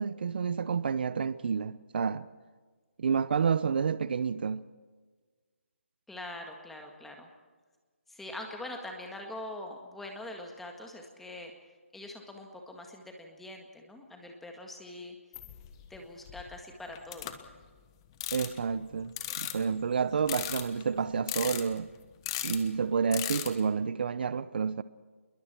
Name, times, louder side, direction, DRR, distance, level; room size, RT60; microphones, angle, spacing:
voice 1, 0.0-2.2 3.0-4.7 18.3-21.9 22.4-24.8, right 6 dB, 45° right, 0.8 m, -29 dB
voice 2, 6.1-7.3 8.1-11.5 11.9-15.1 15.9-17.3, left 1 dB, 5° left, 1.8 m, -43 dB
sound 1, 15.3-16.0 16.3-16.6 16.9-17.6 18.2-18.6 19.1-19.8 20.2-20.8 21.3-21.9 22.2-22.6 23.1-23.6, left 13 dB, 20° left, 1.3 m, -36 dB
27.5 x 22.0 x 4.6 m
hypercardioid pair, 165°, 7 cm